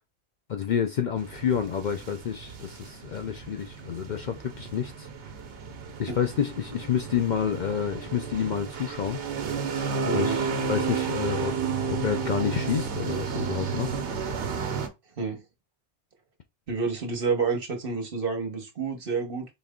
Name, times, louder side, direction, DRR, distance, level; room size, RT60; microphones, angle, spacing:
voice 1, 0.5-5.1 6.0-9.2 10.1-11.5 11.9-14.0, left 8 dB, 55° left, 0.6 m, -29 dB
sound 1, 1.2-14.9, right 5 dB, 90° right, 1.1 m, -32 dB
voice 2, 10.0-10.4 15.2-15.4 16.7-19.5, right 4 dB, 55° right, 1.3 m, -29 dB
4.2 x 3.3 x 3.6 m
omnidirectional pair, 1.1 m